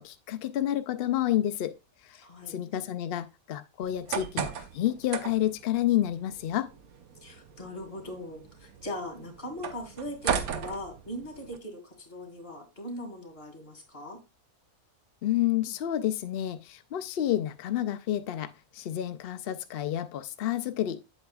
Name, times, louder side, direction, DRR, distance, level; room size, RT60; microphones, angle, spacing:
voice 1, 0.0-1.7 2.0-6.7 15.2-21.0, left 12 dB, 70° left, 0.5 m, -30 dB
voice 2, 2.2-2.6 7.2-14.2, left 1 dB, 45° left, 2.4 m, -40 dB
sound 1, 3.8-11.6, right 7 dB, 90° right, 1.3 m, -37 dB
8.0 x 7.5 x 2.3 m
omnidirectional pair, 1.5 m